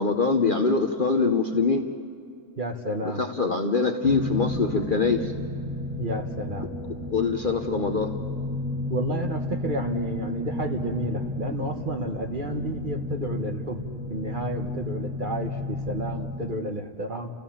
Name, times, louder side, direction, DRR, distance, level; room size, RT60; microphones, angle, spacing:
voice 1, 0.0-1.9 3.2-5.3 7.1-8.1, left 4 dB, 40° left, 5 dB, 0.9 m, -23 dB
voice 2, 2.6-3.2 5.9-6.7 8.9-13.8 14.1-17.3, right 1 dB, 35° right, 4 dB, 1.3 m, -31 dB
sound 1, 4.0-16.5, left 1 dB, 15° right, 1.5 m, -32 dB
30.0 x 15.5 x 7.3 m, 2.4 s
omnidirectional pair, 1.6 m